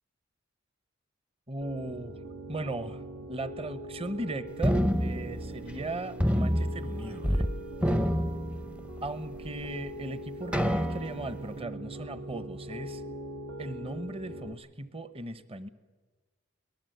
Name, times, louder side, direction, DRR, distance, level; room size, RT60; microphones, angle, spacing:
voice 1, 1.5-2.2 2.5-3.0 3.3-7.5 9.0-13.0 13.6-15.7, right 2 dB, 30° right, 13 dB, 1.0 m, -37 dB
Piano, 1.6-14.5, right 1 dB, 80° right, 1.8 m, -42 dB
sound 1, 4.6-5.9 6.2-7.5 7.8-9.1 9.6-9.7 10.5-11.4, equal, 5° right, 0.6 m, -28 dB
23.5 x 19.5 x 8.0 m, 1.3 s
head